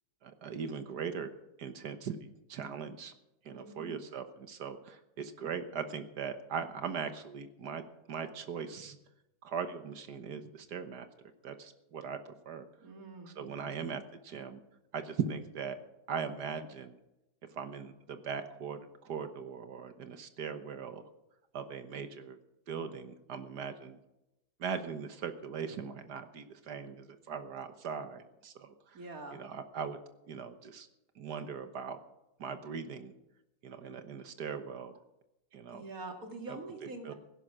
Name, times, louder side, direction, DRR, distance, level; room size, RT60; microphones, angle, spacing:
voice 1, 0.2-1.3 1.6-3.1 3.5-9.0 9.4-11.1 11.4-12.7 13.2-14.6 14.9-15.8 16.1-17.0 17.5-21.0 21.5-22.4 22.7-24.0 24.6-29.0 29.3-30.0 30.3-30.9 31.2-32.0 32.4-33.1 33.6-35.0 35.5-35.8 36.5-37.1, right 6 dB, 75° right, 9 dB, 1.7 m, -40 dB
voice 2, 3.5-4.0 12.8-13.8 28.9-29.4 35.7-37.1, right 2 dB, 60° right, 4 dB, 2.7 m, -45 dB
16.0 x 11.5 x 6.1 m, 0.89 s
omnidirectional pair, 1.8 m